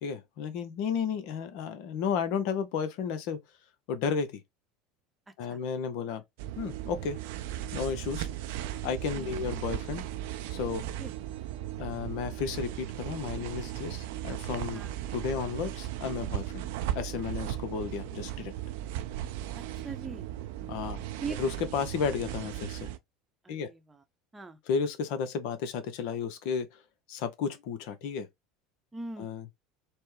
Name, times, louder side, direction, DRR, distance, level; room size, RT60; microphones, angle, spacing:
voice 1, 0.0-3.4 3.9-4.4 5.4-6.2 6.6-7.2 7.7-8.3 8.8-10.0 10.5-10.8 11.8-14.8 15.1-16.6 16.9-18.5 20.7-21.0 21.4-22.9 23.5-23.7 24.7-26.7 27.1-28.3 29.2-29.4, left 6 dB, 60° left, 0.7 m, -33 dB
sound 1, 6.4-23.0, right 12 dB, 65° right, 0.4 m, -37 dB
voice 2, 9.1-9.5 11.0-11.1 14.7-14.9 19.5-20.3 21.2-21.4 23.4-24.0 24.3-24.6 28.9-29.3, right 4 dB, 15° right, 0.7 m, -41 dB
4.3 x 2.1 x 3.2 m
figure-of-eight pair, 70°, 0 cm